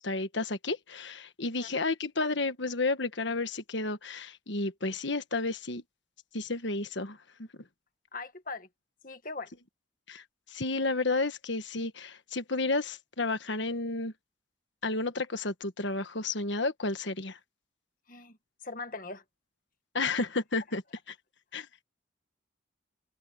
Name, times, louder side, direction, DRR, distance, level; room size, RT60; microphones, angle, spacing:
voice 1, 0.0-5.8 6.3-7.5 10.1-10.2 10.5-14.1 14.8-17.4 19.9-20.8 21.5-21.8, left 3 dB, 70° left, 1.4 m, -32 dB
voice 2, 8.1-8.7 9.0-9.5 18.1-18.4 18.6-19.2 21.5-21.6, left 3 dB, 45° left, 1.8 m, -40 dB
head